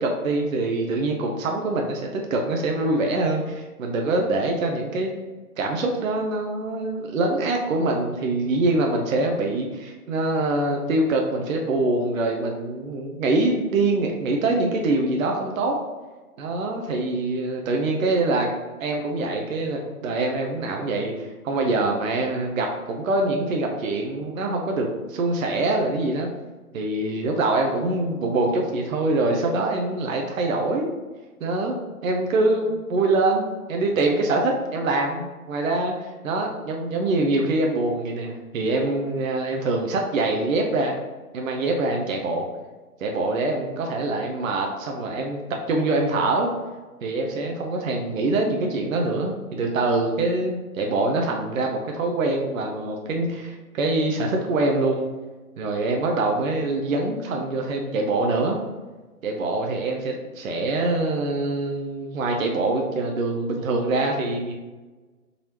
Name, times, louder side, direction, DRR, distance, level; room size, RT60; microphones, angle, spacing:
voice 1, 0.0-5.1 5.6-15.8 16.4-18.5 18.8-26.3 26.7-30.9 31.4-31.8 32.0-40.9 41.3-42.5 43.0-46.5 47.0-55.1 55.6-58.6 59.2-64.5, right 2 dB, 60° right, 1 dB, 0.7 m, -24 dB
3.9 x 3.1 x 2.9 m, 1.2 s
hypercardioid pair, 155°, 46 cm